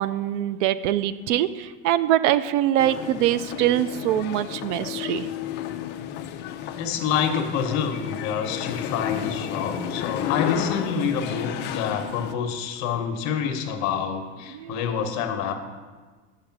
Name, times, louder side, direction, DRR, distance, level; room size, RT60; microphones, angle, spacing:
voice 1, 0.0-5.3 14.5-14.8, right 12 dB, 70° right, 15 dB, 0.5 m, -23 dB
sound 1, 2.8-12.3, left 10 dB, 30° left, 0.4 m, -32 dB
voice 2, 6.7-15.5, left 7 dB, 50° left, 6 dB, 1.0 m, -27 dB
6.5 x 5.8 x 5.9 m, 1.4 s
supercardioid pair, 140°, 37 cm